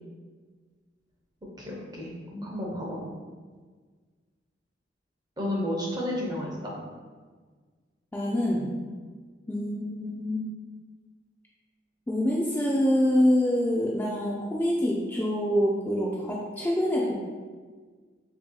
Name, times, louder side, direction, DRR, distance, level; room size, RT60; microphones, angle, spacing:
voice 1, 1.6-2.1 2.4-3.1 5.4-6.7, left 1 dB, 20° right, -3 dB, 0.8 m, -31 dB
voice 2, 8.1-8.7 9.5-10.4 12.1-17.1, equal, 10° left, -4 dB, 0.3 m, -25 dB
5.4 x 2.8 x 2.3 m, 1.5 s
head